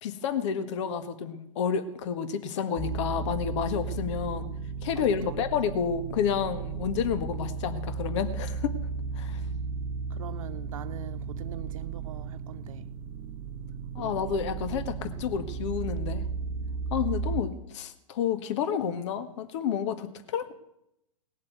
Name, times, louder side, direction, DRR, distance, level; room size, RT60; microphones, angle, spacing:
voice 1, 0.0-4.5 4.8-8.7 9.2-9.4 13.9-16.3 16.9-20.5, left 7 dB, 55° left, 1.7 m, -30 dB
sound 1, 2.8-17.4, right 5 dB, 30° right, 1.0 m, -34 dB
voice 2, 10.1-12.9 14.0-14.3, right 10 dB, 70° right, 1.2 m, -43 dB
19.0 x 7.5 x 9.2 m
hypercardioid pair, 130°, 18 cm